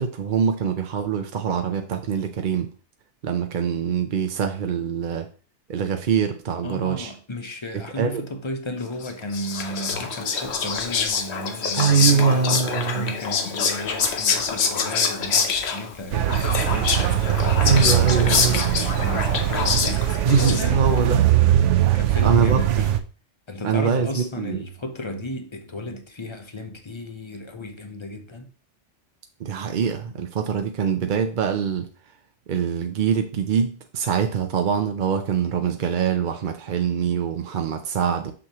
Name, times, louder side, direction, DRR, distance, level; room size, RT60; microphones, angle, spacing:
voice 1, 0.0-2.7 3.2-5.3 5.7-7.1 7.7-8.2 11.7-13.1 17.6-18.6 20.2-21.2 22.2-22.6 23.6-24.7 29.4-31.9 32.5-38.3, right 6 dB, 55° right, 0.7 m, -23 dB
voice 2, 6.6-12.5 12.9-17.3 17.7-20.0 20.4-21.3 21.9-23.0 23.5-28.5, left 1 dB, 30° left, 0.8 m, -34 dB
Whispering, 9.0-21.0, left 5 dB, 65° left, 1.0 m, -25 dB
sound 1, 16.1-23.0, right 12 dB, 90° right, 0.9 m, -21 dB
6.3 x 6.0 x 3.0 m
omnidirectional pair, 1.2 m